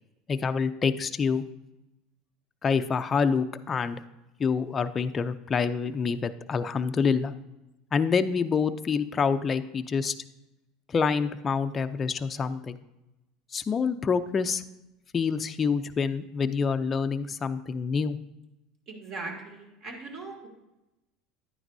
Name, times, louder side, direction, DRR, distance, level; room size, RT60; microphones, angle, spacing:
voice 1, 0.3-1.4 2.6-4.0 4.4-7.3 7.9-10.1 10.9-12.7 13.5-14.6 15.1-18.2, left 5 dB, 30° left, 9 dB, 0.5 m, -27 dB
voice 2, 18.9-20.5, right 3 dB, 45° right, 1 dB, 2.4 m, -39 dB
10.5 x 9.3 x 2.7 m, 0.96 s
supercardioid pair, 110°, 0 cm